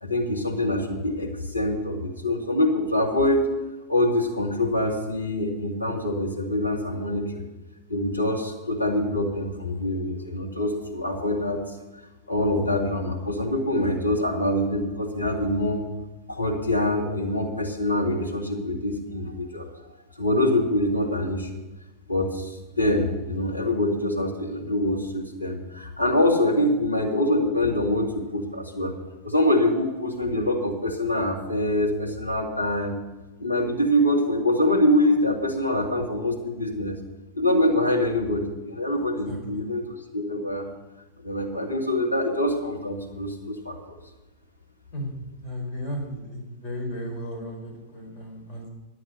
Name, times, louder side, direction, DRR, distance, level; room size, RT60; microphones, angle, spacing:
voice 1, 0.0-3.5 3.9-7.4 7.9-11.7 12.3-15.8 16.3-19.7 20.2-21.5 22.1-28.9 29.2-33.0 33.4-37.0 37.3-40.7 41.2-44.0, left 1 dB, 85° left, -1 dB, 2.2 m, -25 dB
voice 2, 39.2-39.7 44.9-45.1 45.4-48.7, equal, 35° left, 0 dB, 4.8 m, -35 dB
11.5 x 7.7 x 7.6 m, 1.1 s
figure-of-eight pair, 90°, 0 cm